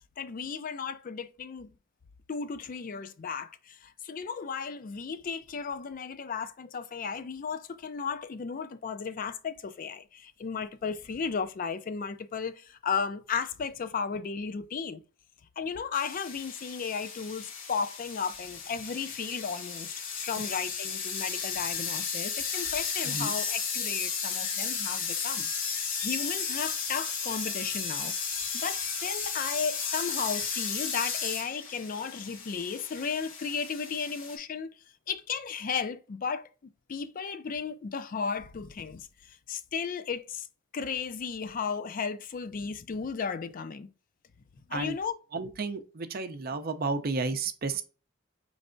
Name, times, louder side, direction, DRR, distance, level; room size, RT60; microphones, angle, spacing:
voice 1, 0.2-1.7 2.3-15.0 15.6-25.5 26.0-34.8 35.1-40.5 40.7-43.9 44.7-45.2, left 6 dB, 45° left, 0.4 m, -35 dB
sound 1, 15.9-34.4, left 6 dB, 90° left, 1.2 m, -34 dB
voice 2, 45.3-47.8, right 3 dB, 50° right, 0.5 m, -32 dB
5.2 x 3.2 x 2.5 m
head